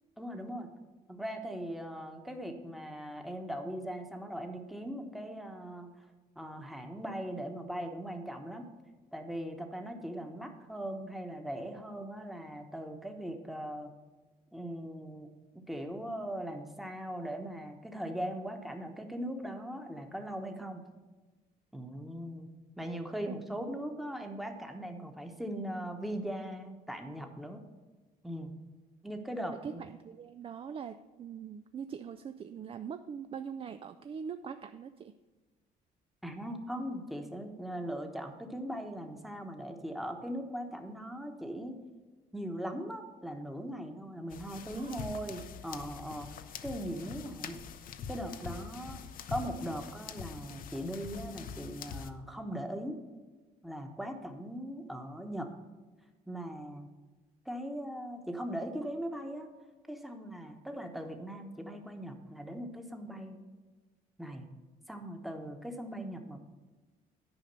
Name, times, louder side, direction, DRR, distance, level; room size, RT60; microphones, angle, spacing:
voice 1, 0.2-0.7 1.1-6.0 6.4-8.7 9.1-13.9 14.5-20.8 21.7-22.5 22.8-27.6 28.2-28.5 29.0-29.8 36.2-41.7 42.3-46.3 46.6-47.6 48.1-49.0 49.3-53.0 53.6-55.5 56.3-56.9 57.4-59.5 59.9-63.4 64.2-64.5 64.9-66.4, equal, ahead, 4 dB, 1.1 m, -39 dB
voice 2, 23.3-23.8 29.6-35.1 44.7-45.2, right 7 dB, 35° right, 9 dB, 0.4 m, -43 dB
sound 1, 44.3-52.1, left 7 dB, 55° left, 0.7 m, -44 dB
10.0 x 5.1 x 6.7 m, 1.2 s
cardioid pair, 110°, 17 cm